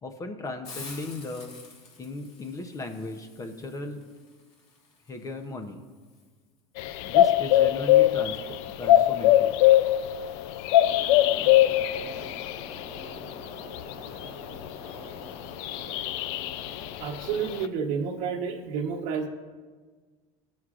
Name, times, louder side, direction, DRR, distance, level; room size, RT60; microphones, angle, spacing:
voice 1, 0.0-1.5 2.0-4.0 5.1-5.8 7.0-9.5, left 2 dB, 25° left, 6 dB, 0.7 m, -37 dB
Hiss, 0.6-6.3, left 3 dB, 45° left, 1.9 m, -49 dB
sound 1, 6.8-15.0 15.6-17.7, left 13 dB, 70° left, 0.4 m, -22 dB
sound 2, 10.8-17.0, right 2 dB, 20° right, 1.0 m, -46 dB
voice 2, 17.0-19.3, right 6 dB, 55° right, 1 dB, 1.2 m, -30 dB
14.5 x 6.2 x 2.4 m, 1.4 s
supercardioid pair, 130°, 15 cm